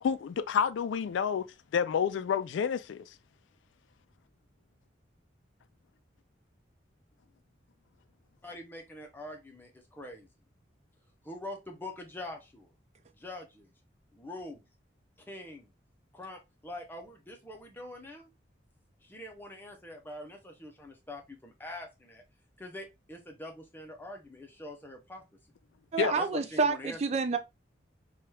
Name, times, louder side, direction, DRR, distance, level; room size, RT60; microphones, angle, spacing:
voice 1, 0.0-1.4 1.7-3.0 26.0-26.1, left 7 dB, 85° left, 0.3 m, -29 dB
voice 2, 8.4-10.3 11.2-12.7 13.1-13.7 14.1-14.6 15.2-15.7 16.1-18.3 19.0-22.2 22.6-25.2 26.1-27.0, left 1 dB, 10° left, 0.6 m, -44 dB
voice 3, 25.9-27.4, right 4 dB, 35° right, 0.3 m, -28 dB
2.9 x 2.3 x 3.0 m
head